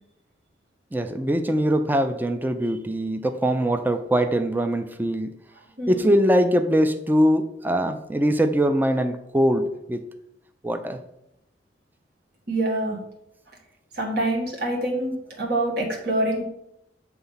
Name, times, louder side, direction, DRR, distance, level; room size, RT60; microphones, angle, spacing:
voice 1, 0.9-5.3 5.9-10.0 10.6-11.0, equal, 10° right, 9 dB, 0.4 m, -22 dB
voice 2, 5.8-6.1 12.5-13.0 13.9-16.4, right 1 dB, 60° right, -1 dB, 1.7 m, -25 dB
7.0 x 3.5 x 5.6 m, 0.80 s
head